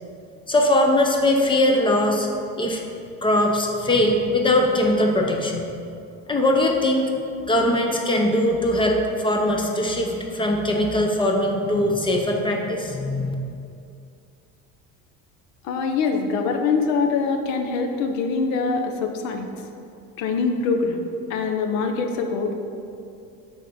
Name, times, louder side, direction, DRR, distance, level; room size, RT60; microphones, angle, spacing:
voice 1, 0.5-2.3 2.6-2.8 3.2-5.7 6.3-7.1 7.5-13.3, left 1 dB, 15° left, 1 dB, 0.5 m, -21 dB
voice 2, 15.6-19.5 20.2-21.0 21.3-22.5, left 4 dB, 75° left, 4 dB, 0.8 m, -24 dB
8.1 x 3.7 x 5.4 m, 2.6 s
cardioid pair, 165°, 29 cm